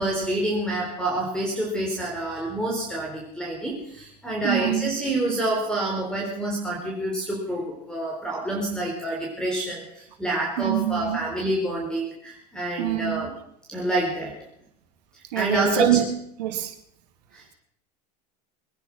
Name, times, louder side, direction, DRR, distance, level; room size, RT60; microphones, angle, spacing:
voice 1, 0.0-13.3 13.7-14.3 15.1-16.0 17.3-17.5, right 1 dB, 5° left, -1 dB, 4.0 m, -27 dB
voice 2, 4.4-4.9 10.6-11.2 12.8-13.2 15.3-16.1 16.4-16.7, right 12 dB, 85° right, 6 dB, 2.6 m, -24 dB
22.5 x 9.9 x 6.2 m, 0.74 s
supercardioid pair, 115°, 20 cm